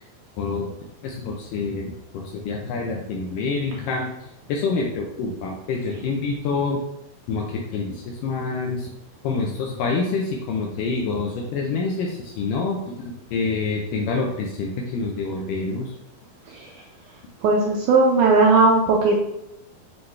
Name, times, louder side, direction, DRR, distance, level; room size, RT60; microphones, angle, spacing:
voice 1, 0.4-0.7 1.0-6.8 7.3-8.9 9.2-16.0, left 4 dB, 80° left, 0 dB, 2.0 m, -27 dB
voice 2, 17.4-19.2, right 3 dB, 85° right, 0 dB, 1.7 m, -17 dB
7.7 x 4.0 x 3.3 m, 0.84 s
omnidirectional pair, 4.3 m